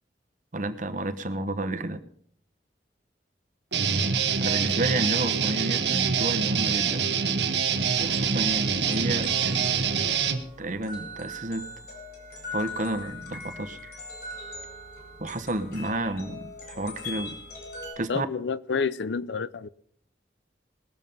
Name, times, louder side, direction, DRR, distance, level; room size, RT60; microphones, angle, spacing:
voice 1, 0.5-2.0 4.4-7.1 8.0-9.7 10.6-11.7 12.5-13.9 15.2-17.4 18.0-18.3, right 1 dB, 45° right, 1.1 m, -31 dB
Guitar, 3.7-10.4, right 6 dB, 70° right, 1.2 m, -25 dB
sound 1, 7.8-17.9, left 2 dB, 60° left, 4.5 m, -41 dB
voice 2, 18.1-19.7, left 5 dB, 80° left, 0.5 m, -29 dB
20.5 x 7.2 x 5.4 m
head